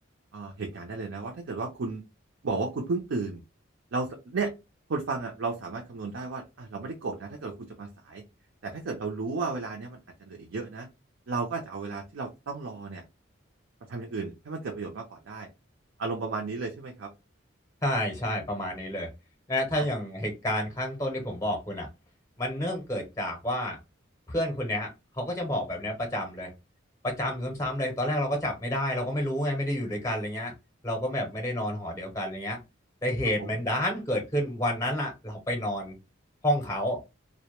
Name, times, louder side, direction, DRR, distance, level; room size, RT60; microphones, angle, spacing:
voice 1, 0.3-2.0 2.4-3.4 3.9-4.5 4.9-8.2 8.6-10.9 11.3-13.0 13.9-15.5 16.0-17.1 19.7-19.9 33.4-33.6, right 3 dB, 80° right, 1 dB, 0.5 m, -33 dB
voice 2, 17.8-19.1 19.5-21.9 22.4-23.8 24.3-24.9 25.2-26.5 27.0-30.5 30.8-32.6 33.0-36.0 36.4-37.0, left 1 dB, 15° left, 2 dB, 0.6 m, -29 dB
2.1 x 2.1 x 2.9 m, 0.25 s
head